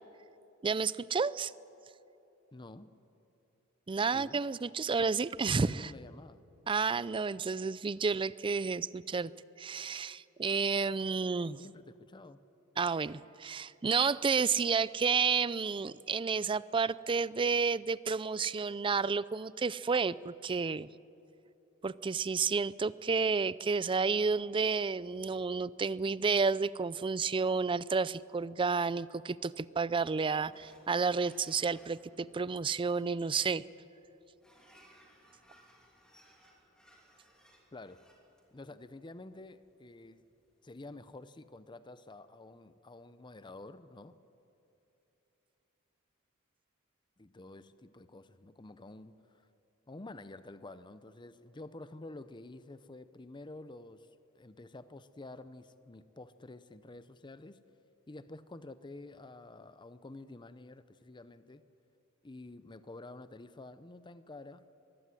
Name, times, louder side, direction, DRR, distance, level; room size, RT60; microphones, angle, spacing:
voice 1, 0.6-1.5 3.9-5.9 6.7-9.3 9.6-11.6 12.8-20.9 21.8-33.6, right 5 dB, 25° right, 19 dB, 0.4 m, -31 dB
voice 2, 2.5-2.9 4.1-4.4 5.6-6.4 11.6-12.4 37.7-38.1 38.5-40.2 40.6-44.2 47.2-49.5 49.9-54.1 54.3-57.6 58.1-61.6 62.2-64.6, left 2 dB, 20° left, 13 dB, 0.6 m, -49 dB
sound 1, 30.4-41.2, equal, 5° left, 2.9 m, -64 dB
22.0 x 15.5 x 10.0 m, 2.9 s
head